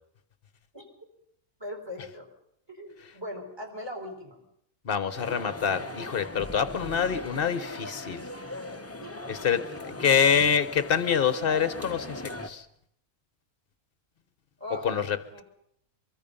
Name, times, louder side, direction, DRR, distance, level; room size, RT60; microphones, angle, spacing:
voice 1, 1.6-2.3 2.7-4.4 9.0-9.4 9.7-10.0 14.6-14.9 15.3-15.4, left 1 dB, 15° right, 3 dB, 4.6 m, -40 dB
voice 2, 4.8-8.3 9.3-12.6 14.8-15.4, left 7 dB, 40° left, 12 dB, 1.2 m, -26 dB
sound 1, 5.1-12.5, left 2 dB, 15° left, 0.7 m, -39 dB
23.5 x 23.0 x 5.5 m, 0.73 s
omnidirectional pair, 1.6 m